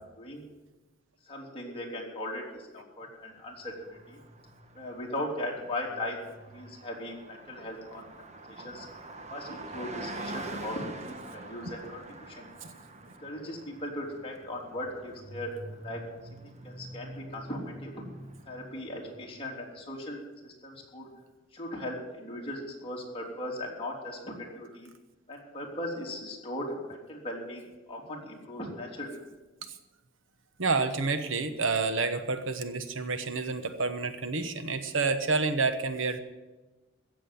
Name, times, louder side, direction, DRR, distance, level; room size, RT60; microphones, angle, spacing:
voice 1, 1.2-4.2 4.7-6.2 6.5-8.1 8.5-8.9 9.3-12.5 13.2-16.0 16.6-17.9 18.5-21.1 21.5-24.9 25.3-29.2, left 1 dB, 30° left, -2 dB, 3.3 m, -38 dB
Car passing by, 3.5-19.5, right 2 dB, 35° right, 1.3 m, -45 dB
voice 2, 30.6-36.2, right 4 dB, 75° right, 9 dB, 1.1 m, -29 dB
15.5 x 7.5 x 9.3 m, 1.2 s
head